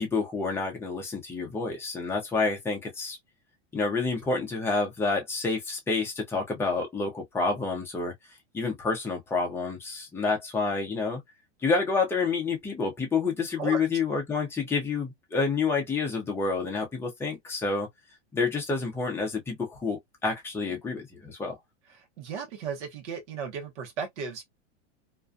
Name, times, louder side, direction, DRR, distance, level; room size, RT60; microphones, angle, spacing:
voice 1, 0.0-3.2 3.7-8.1 8.5-11.2 11.6-17.9 18.3-21.6, left 4 dB, 5° left, 0.5 m, -28 dB
voice 2, 21.9-24.4, right 6 dB, 80° right, 1.0 m, -35 dB
2.5 x 2.2 x 2.5 m
supercardioid pair, 150°, 35 cm